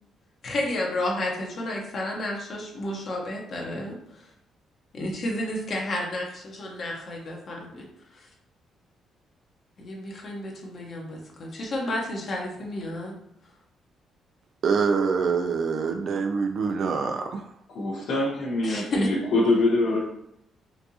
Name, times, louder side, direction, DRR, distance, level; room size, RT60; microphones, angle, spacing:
voice 1, 0.4-4.0 4.9-7.9 8.1-8.2 9.8-13.1 18.6-19.1, left 1 dB, 50° left, -1 dB, 1.0 m, -31 dB
voice 2, 14.6-17.4, right 5 dB, 60° right, 4 dB, 0.3 m, -25 dB
voice 3, 17.7-20.0, left 2 dB, 80° left, -8 dB, 1.0 m, -24 dB
4.3 x 2.6 x 2.8 m, 0.77 s
cardioid pair, 90°, 0 cm